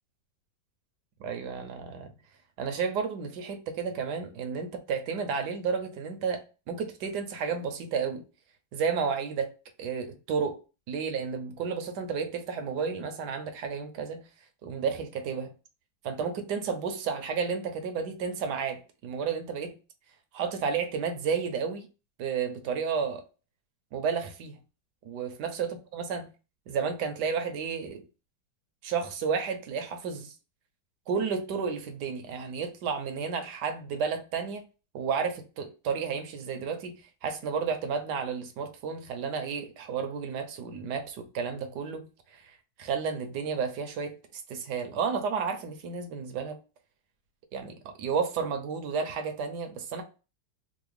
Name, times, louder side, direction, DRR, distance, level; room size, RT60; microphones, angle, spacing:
voice 1, 1.2-2.1 2.6-8.2 8.7-9.5 9.8-10.6 10.9-14.2 14.6-15.5 16.0-19.7 20.3-21.9 22.2-23.2 23.9-24.6 25.0-26.3 26.7-28.0 28.8-30.3 31.1-34.6 34.9-42.4 42.8-44.2 44.5-46.6 47.5-50.0, right 6 dB, 70° right, 1.1 m, -32 dB
3.9 x 2.0 x 3.2 m
omnidirectional pair, 2.1 m